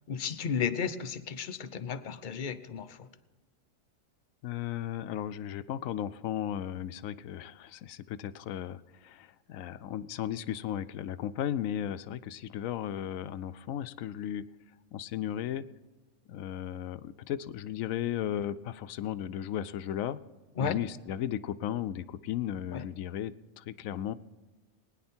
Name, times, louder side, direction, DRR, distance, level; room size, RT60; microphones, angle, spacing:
voice 1, 0.1-3.1 20.6-20.8 22.7-22.9, left 7 dB, 50° left, 12 dB, 0.7 m, -33 dB
voice 2, 4.4-14.4 14.9-15.6 16.3-20.2 20.6-24.1, left 10 dB, 85° left, 14 dB, 1.0 m, -35 dB
20.5 x 10.0 x 4.4 m, 1.3 s
omnidirectional pair, 1.4 m